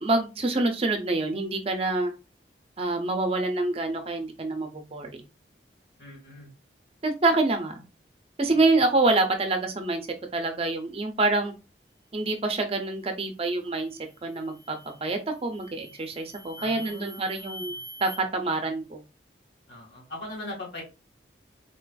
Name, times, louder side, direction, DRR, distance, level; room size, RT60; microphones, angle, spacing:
voice 1, 0.0-2.1 2.8-5.2 7.0-7.8 8.4-10.0 10.3-11.5 12.1-14.8 15.0-17.7 18.0-19.0, right 2 dB, 35° right, 5 dB, 0.5 m, -26 dB
voice 2, 6.0-6.5 8.5-8.6 16.6-17.8 19.7-20.8, left 1 dB, 85° left, -2 dB, 1.8 m, -41 dB
sound 1, 13.7-14.0 14.5-15.0 15.5-18.2, right 1 dB, 35° left, 0.8 m, -44 dB
3.8 x 2.4 x 2.3 m, 0.29 s
head